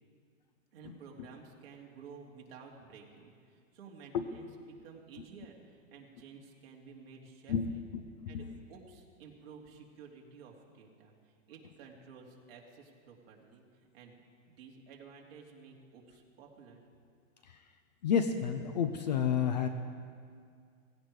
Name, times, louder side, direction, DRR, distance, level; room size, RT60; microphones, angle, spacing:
voice 1, 0.7-7.8 8.3-14.2 14.5-16.8, right 5 dB, 45° right, -1 dB, 2.4 m, -53 dB
voice 2, 7.5-8.5 17.4-17.6 18.0-19.7, left 7 dB, 35° left, 9 dB, 0.5 m, -31 dB
17.5 x 16.5 x 4.8 m, 2.2 s
supercardioid pair, 170°, 40 cm